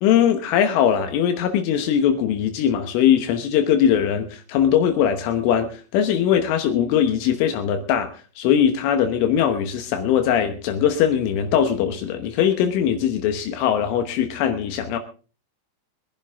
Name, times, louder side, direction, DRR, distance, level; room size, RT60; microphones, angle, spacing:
voice 1, 0.0-8.1 8.4-15.0, left 9 dB, 80° left, 6 dB, 3.6 m, -20 dB
24.0 x 11.0 x 3.6 m, 0.36 s
omnidirectional pair, 5.6 m